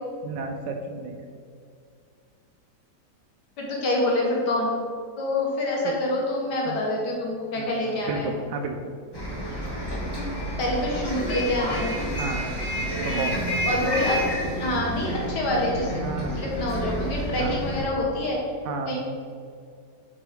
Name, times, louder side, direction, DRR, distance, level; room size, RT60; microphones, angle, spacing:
voice 1, 0.2-1.2 5.8-5.9 6.7-6.8 7.6-8.8 12.2-12.5 12.9-13.5 16.0-16.4 17.4-17.6 18.6-19.0, right 4 dB, 80° right, 3 dB, 1.2 m, -32 dB
voice 2, 3.6-4.8 5.2-8.3 10.6-11.9 13.7-14.2 14.6-15.9 16.4-18.4 18.9-19.1, left 1 dB, 75° left, -2 dB, 2.0 m, -26 dB
Bus, 9.1-17.8, equal, 15° left, 1.1 m, -29 dB
6.0 x 4.5 x 5.0 m, 2.3 s
omnidirectional pair, 1.8 m